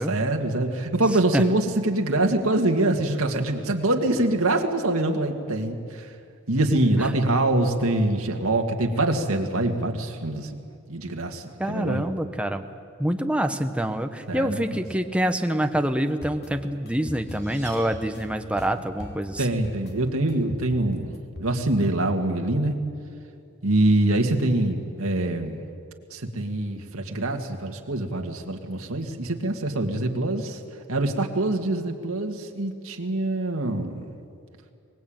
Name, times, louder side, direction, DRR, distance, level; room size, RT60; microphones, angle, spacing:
voice 1, 0.1-6.1 6.5-10.6 10.9-12.0 14.3-14.5 19.4-21.1 21.4-22.8 23.6-25.6 26.1-30.6 30.9-34.1, right 2 dB, 70° right, 3 dB, 2.2 m, -24 dB
voice 2, 11.6-12.6 13.0-19.5, right 1 dB, 5° right, 6 dB, 1.0 m, -26 dB
sound 1, 16.2-21.5, left 1 dB, 50° left, 2.9 m, -41 dB
sound 2, 16.8-18.6, right 2 dB, 10° left, 6.8 m, -48 dB
23.5 x 20.0 x 8.9 m, 2.4 s
head